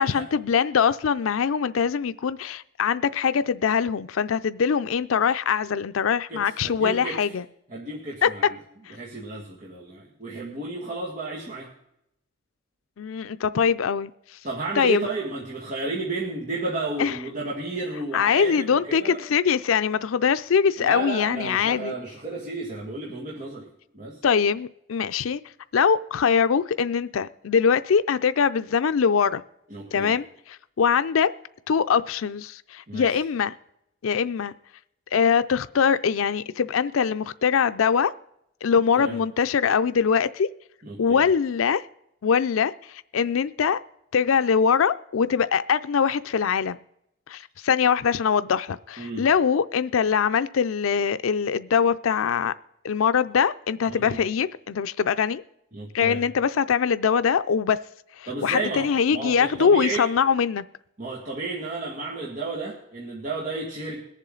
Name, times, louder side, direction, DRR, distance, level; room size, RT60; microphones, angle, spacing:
voice 1, 0.0-7.4 8.2-8.3 8.9-9.0 13.0-14.1 14.8-15.1 17.0-17.2 18.1-21.9 24.2-25.4 25.7-29.4 29.9-30.2 30.8-31.3 31.7-33.5 34.0-34.5 35.1-38.1 38.6-40.5 41.0-41.8 42.2-43.8 44.1-46.8 47.3-52.5 52.8-55.4 55.9-57.8 58.2-60.6, left 6 dB, 90° left, 0.4 m, -22 dB
voice 2, 6.3-7.3 7.7-8.6 8.9-11.7 14.4-19.2 20.8-24.2 29.7-30.2 32.9-33.2 39.0-39.2 40.8-41.3 49.0-49.3 53.9-54.2 55.7-56.2 58.3-60.1 61.0-64.0, right 3 dB, 40° right, 1.9 m, -32 dB
22.0 x 7.4 x 3.8 m
head